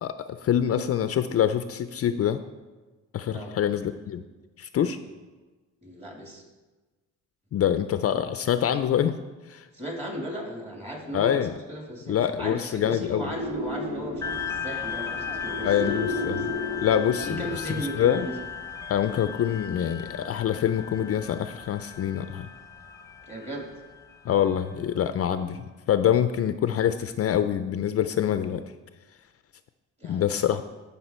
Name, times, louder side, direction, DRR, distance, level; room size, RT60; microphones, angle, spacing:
voice 1, 0.0-2.4 3.1-4.2 4.6-5.0 7.5-9.1 9.5-9.7 11.1-11.5 12.1-13.2 15.6-16.5 16.8-17.6 18.0-18.3 18.9-22.5 24.2-28.6 30.0-30.6, left 9 dB, 50° left, 10 dB, 0.5 m, -25 dB
voice 2, 5.8-6.4 9.7-16.6 17.2-18.4 19.0-19.2 23.2-23.7 30.0-30.6, right 1 dB, 20° right, 0 dB, 2.6 m, -37 dB
sound 1, 13.2-17.9, left 2 dB, 75° right, 1.8 m, -33 dB
sound 2, 14.2-25.1, left 7 dB, 10° left, 0.9 m, -37 dB
12.0 x 5.7 x 4.3 m, 1.2 s
cardioid pair, 90°, 30 cm